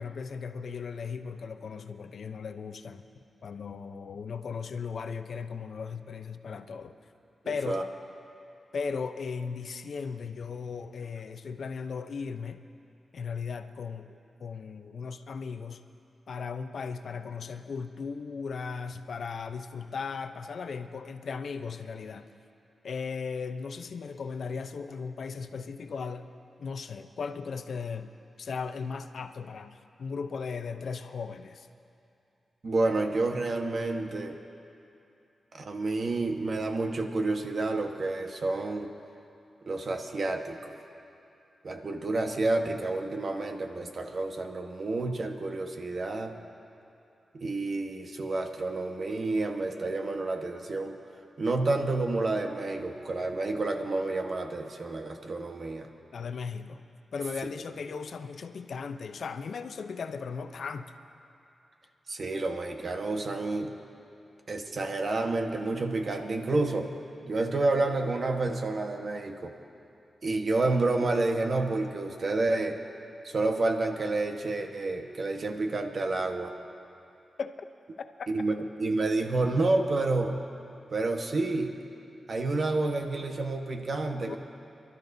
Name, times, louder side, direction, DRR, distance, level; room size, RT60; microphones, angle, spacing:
voice 1, 0.0-3.1 3.4-7.0 7.4-7.8 8.7-12.6 13.1-15.8 16.3-22.3 22.8-26.3 26.6-28.1 28.4-31.7 56.1-56.8 57.1-60.9 77.4-77.5 78.2-78.3 84.2-84.4, left 5 dB, 70° left, 9 dB, 0.6 m, -37 dB
voice 2, 7.4-7.8 32.6-34.4 35.5-38.9 39.7-40.7 41.6-46.3 47.3-51.0 51.4-55.9 62.1-63.7 64.5-66.9 67.2-69.5 70.2-72.8 73.2-76.5 78.3-80.4 80.9-81.7 82.3-84.4, right 2 dB, 55° right, 4 dB, 1.3 m, -29 dB
28.0 x 12.5 x 2.7 m, 2.8 s
cardioid pair, 65°, 0 cm